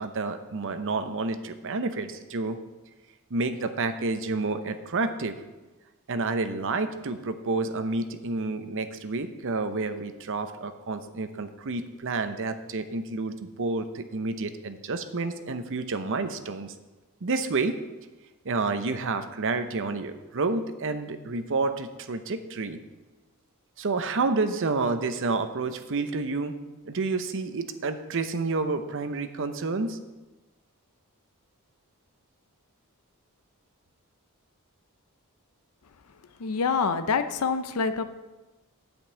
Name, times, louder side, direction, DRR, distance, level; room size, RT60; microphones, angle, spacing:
voice 1, 0.0-2.6 3.3-5.4 6.1-16.7 17.2-17.8 18.4-22.8 23.8-26.5 26.8-30.0, right 3 dB, 60° right, 9 dB, 0.7 m, -29 dB
voice 2, 36.4-38.0, left 5 dB, 80° left, 10 dB, 0.6 m, -26 dB
8.7 x 5.3 x 7.9 m, 1.1 s
head